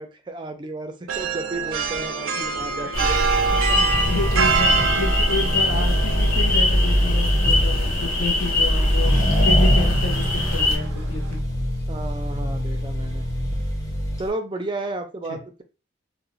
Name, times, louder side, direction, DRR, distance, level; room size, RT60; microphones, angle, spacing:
voice 1, 0.0-3.2 3.7-3.8 11.9-13.3 14.2-15.6, right 2 dB, 25° right, 6 dB, 0.3 m, -33 dB
sound 1, 1.1-11.4, right 5 dB, 90° right, 0.4 m, -27 dB
sound 2, 2.9-10.8, left 1 dB, 45° left, 1.1 m, -21 dB
voice 2, 3.5-11.4 15.3-15.4, left 3 dB, 65° left, 2 dB, 0.6 m, -30 dB
Accelerating revving vroom, 3.9-14.3, equal, 20° left, 0.7 m, -26 dB
2.4 x 2.0 x 3.0 m, 0.31 s
head